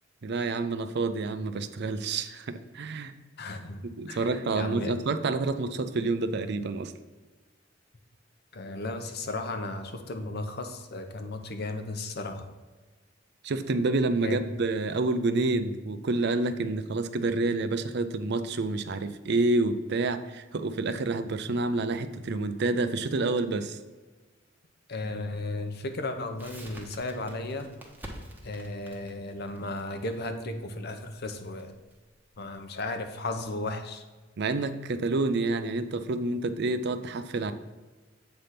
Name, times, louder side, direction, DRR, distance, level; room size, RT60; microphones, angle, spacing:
voice 1, 0.2-3.1 4.0-6.9 13.4-23.8 34.4-37.5, right 3 dB, 60° right, 10 dB, 0.5 m, -28 dB
voice 2, 3.4-4.9 8.5-12.5 14.2-14.5 24.9-27.7 28.4-31.8 32.4-34.0, left 2 dB, 55° left, 7 dB, 0.8 m, -35 dB
Crackle, 26.4-33.2, right 1 dB, 10° right, 1.0 m, -48 dB
7.9 x 3.5 x 5.7 m, 1.3 s
head